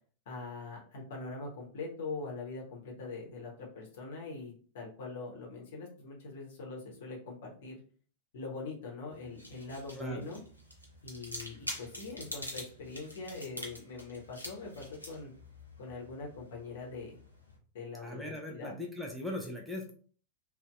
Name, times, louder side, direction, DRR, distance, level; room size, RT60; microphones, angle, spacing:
voice 1, 0.3-7.8 8.3-10.4 11.0-15.3 15.8-17.2 17.7-18.8, left 3 dB, 55° left, -2 dB, 0.9 m, -43 dB
sound 1, 9.1-17.6, left 1 dB, 90° left, 0.5 m, -46 dB
voice 2, 9.9-10.3 18.0-19.9, left 1 dB, 5° right, 0 dB, 0.5 m, -39 dB
2.5 x 2.1 x 2.3 m, 0.43 s
figure-of-eight pair, 90°, 0 cm